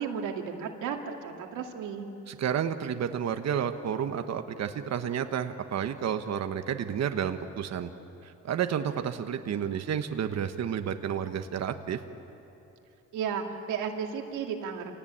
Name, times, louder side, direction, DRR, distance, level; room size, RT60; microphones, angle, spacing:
voice 1, 0.0-2.1 13.1-14.9, right 7 dB, 90° right, 2 dB, 2.3 m, -34 dB
voice 2, 2.3-7.9 8.2-12.0, right 8 dB, 60° right, 8 dB, 1.2 m, -31 dB
27.5 x 18.5 x 8.8 m, 2.9 s
cardioid pair, 90°, 30 cm